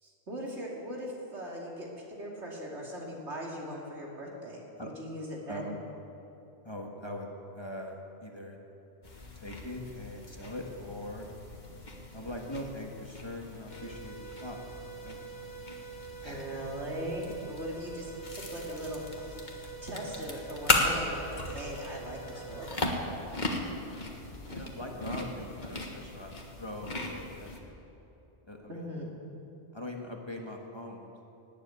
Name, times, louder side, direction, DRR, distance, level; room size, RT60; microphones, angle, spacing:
voice 1, 0.0-5.7 16.2-23.0 28.7-29.1, equal, 80° right, -2 dB, 3.0 m, -40 dB
voice 2, 6.6-7.3 7.5-8.6 9.3-11.3 12.1-14.6 15.0-15.2 16.2-16.6 24.4-27.7 28.4-28.8 29.7-31.2, left 1 dB, 25° left, 0 dB, 1.6 m, -41 dB
sound 1, 9.0-27.6, left 2 dB, 40° left, 1.7 m, -37 dB
sound 2, 13.7-22.7, right 6 dB, 70° left, 2.5 m, -46 dB
18.5 x 7.8 x 9.5 m, 3.0 s
omnidirectional pair, 1.1 m